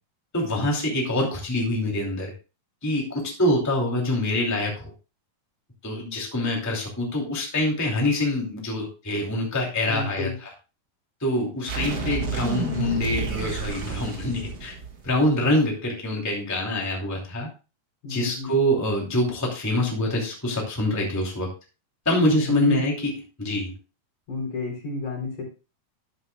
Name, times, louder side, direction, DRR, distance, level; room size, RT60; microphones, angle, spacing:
voice 1, 0.3-2.3 2.8-4.9 5.8-10.3 11.2-14.7 15.0-17.5 18.1-21.5 22.0-23.1 23.4-23.8, left 1 dB, 5° left, -2 dB, 2.2 m, -25 dB
voice 2, 9.9-10.4 18.0-18.5 22.2-22.8 24.3-25.4, left 2 dB, 60° left, -2 dB, 5.3 m, -30 dB
sound 1, 11.7-15.4, right 4 dB, 50° right, 1.1 m, -30 dB
13.0 x 9.6 x 2.3 m, 0.31 s
omnidirectional pair, 4.1 m